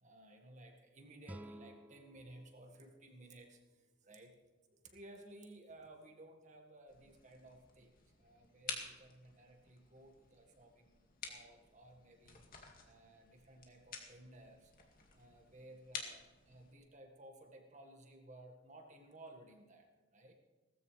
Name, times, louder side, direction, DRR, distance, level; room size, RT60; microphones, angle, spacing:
voice 1, 0.0-3.6 4.0-4.3 4.9-7.9 8.2-10.9 11.2-12.4 12.8-14.7 15.1-19.8 20.1-20.3, right 1 dB, 35° right, 3 dB, 1.9 m, -57 dB
sound 1, 1.2-4.3, right 1 dB, 10° right, 0.4 m, -55 dB
sound 2, 6.9-16.7, left 5 dB, 45° left, 2.3 m, -51 dB
17.5 x 15.0 x 3.4 m, 1.3 s
head